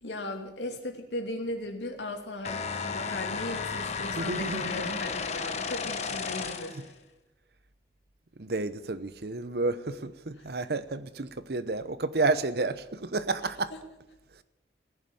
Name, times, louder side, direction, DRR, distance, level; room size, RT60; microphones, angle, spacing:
voice 1, 0.0-7.0 10.4-10.5 13.7-13.8, left 1 dB, 90° left, 2.7 m, -37 dB
sound 1, 2.4-6.9, left 5 dB, 40° left, 1.1 m, -33 dB
voice 2, 4.2-5.0 8.4-13.7, right 3 dB, 60° right, 0.9 m, -31 dB
17.0 x 11.0 x 7.1 m
head